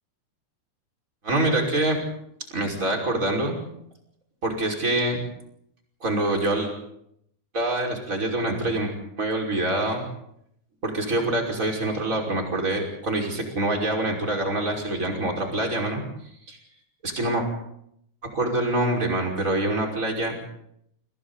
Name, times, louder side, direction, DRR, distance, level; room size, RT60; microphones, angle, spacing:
voice 1, 1.2-2.0 2.5-3.6 4.4-5.2 6.0-6.7 7.5-10.0 10.8-16.0 16.5-16.6 17.0-17.5 18.2-20.4, right 1 dB, 15° right, 0 dB, 5.5 m, -25 dB
29.5 x 27.5 x 4.2 m, 0.74 s
omnidirectional pair, 5.1 m